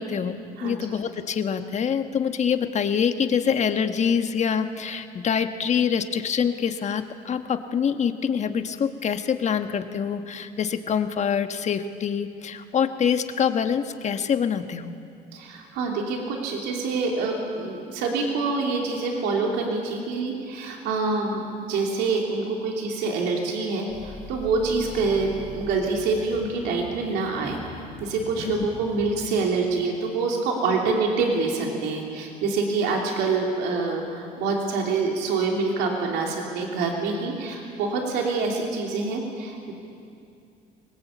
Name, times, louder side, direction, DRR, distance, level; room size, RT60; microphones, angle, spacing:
voice 1, 0.0-15.0 28.4-28.5, left 7 dB, 45° left, 8 dB, 1.3 m, -25 dB
voice 2, 0.6-0.9 15.3-27.6 28.0-39.7, right 4 dB, 90° right, 0 dB, 3.1 m, -26 dB
sound 1, 23.9-29.1, left 3 dB, 60° left, 5.3 m, -42 dB
24.0 x 20.0 x 8.4 m, 2.5 s
cardioid pair, 110°, 17 cm